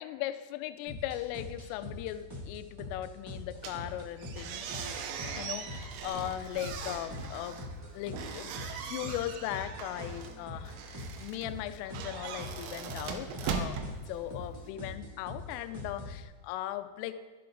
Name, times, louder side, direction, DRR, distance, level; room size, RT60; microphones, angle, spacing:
voice 1, 0.0-4.6 5.4-7.6 7.9-8.5 8.8-13.8 14.1-17.2, left 13 dB, 85° left, 11 dB, 3.1 m, -38 dB
sound 1, 0.9-16.2, left 1 dB, 10° right, 1.0 m, -44 dB
sound 2, 3.6-14.7, right 6 dB, 85° right, 3.7 m, -40 dB
12.5 x 12.5 x 3.9 m, 1.4 s
omnidirectional pair, 5.8 m